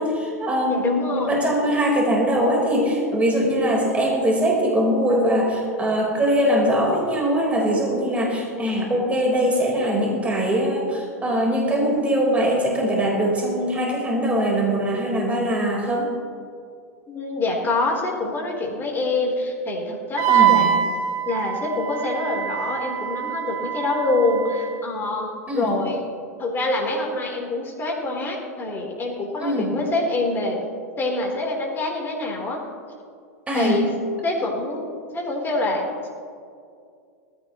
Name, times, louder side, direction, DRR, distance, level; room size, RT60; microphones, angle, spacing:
voice 1, 0.0-16.1 20.3-20.6 25.5-25.8 29.4-29.7 33.5-33.8, equal, 15° right, -2 dB, 4.4 m, -22 dB
voice 2, 0.7-1.5 17.1-20.8 21.2-26.0 26.4-30.6 31.0-32.6 33.5-33.9 34.2-34.9 35.1-35.8, left 2 dB, 25° left, -2 dB, 3.9 m, -25 dB
Wind instrument woodwind instrument, 20.2-24.8, right 10 dB, 55° right, 1.4 m, -24 dB
20.0 x 15.5 x 3.2 m, 2.4 s
hypercardioid pair, 95°, 8 cm